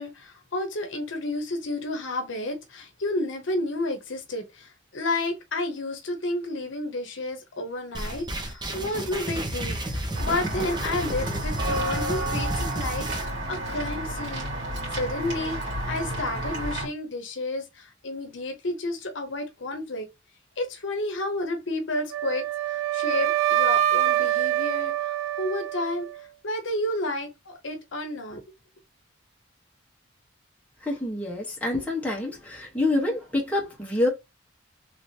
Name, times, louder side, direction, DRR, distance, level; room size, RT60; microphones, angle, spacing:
voice 1, 0.0-14.5 14.9-20.1 20.6-28.4, left 2 dB, 75° left, 0.8 m, -31 dB
sound 1, 7.9-13.2, right 1 dB, 25° right, 0.7 m, -32 dB
Walk footsteps / Bell, 10.2-16.8, right 1 dB, 60° right, 1.9 m, -31 dB
Wind instrument woodwind instrument, 22.1-26.2, right 13 dB, 85° right, 0.3 m, -25 dB
voice 2, 30.8-34.1, left 2 dB, 10° left, 1.1 m, -27 dB
3.2 x 2.9 x 2.7 m
head